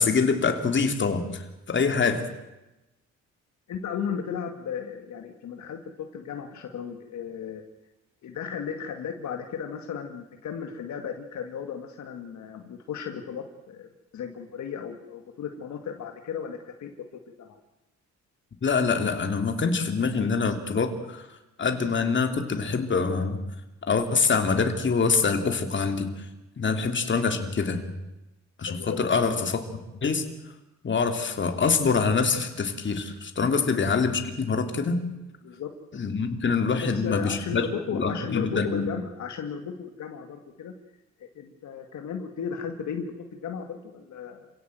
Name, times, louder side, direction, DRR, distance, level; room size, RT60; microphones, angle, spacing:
voice 1, 0.0-1.4 1.7-2.2 18.6-21.2 21.6-23.4 23.9-26.1 26.6-27.9 28.6-29.7 30.0-30.2 30.8-35.0 35.9-37.6 37.9-38.9, left 5 dB, 40° left, 6 dB, 3.1 m, -25 dB
voice 2, 3.7-7.6 8.2-17.6 28.7-29.1 33.5-33.6 35.4-35.7 36.7-39.7 40.0-40.7 41.2-44.5, left 7 dB, 70° left, 5 dB, 2.3 m, -35 dB
27.5 x 17.0 x 7.9 m, 0.98 s
cardioid pair, 90°, 30 cm